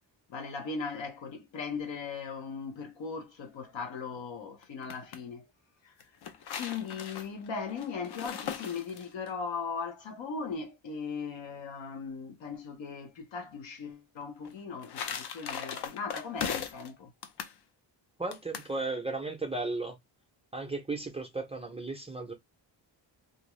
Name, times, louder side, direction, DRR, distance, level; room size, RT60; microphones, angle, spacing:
voice 1, 0.3-5.5 5.8-5.9 6.5-17.1, left 5 dB, 80° left, 0.9 m, -38 dB
sound 1, 4.6-5.2 6.0-9.3 14.4-16.9 17.2-17.6 18.3-18.7, left 7 dB, 60° left, 0.6 m, -38 dB
voice 2, 18.2-20.0 20.5-22.3, right 3 dB, 15° right, 0.4 m, -35 dB
2.6 x 2.3 x 3.0 m
wide cardioid pair, 155°, 44 cm